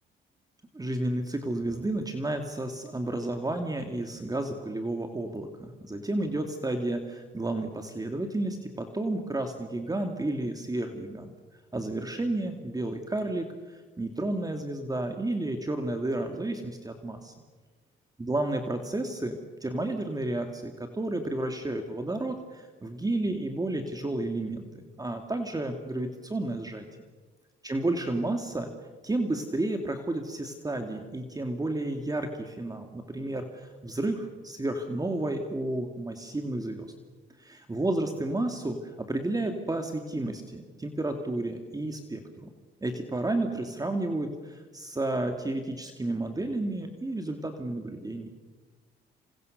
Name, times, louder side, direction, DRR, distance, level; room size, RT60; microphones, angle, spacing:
voice 1, 0.7-11.3 11.7-17.3 18.2-24.7 25.0-26.9 27.6-28.7 29.0-36.9 37.4-42.5 42.8-48.3, right 2 dB, 20° right, 5 dB, 2.4 m, -31 dB
27.5 x 26.5 x 6.6 m, 1.3 s
cardioid pair, 90°, 20 cm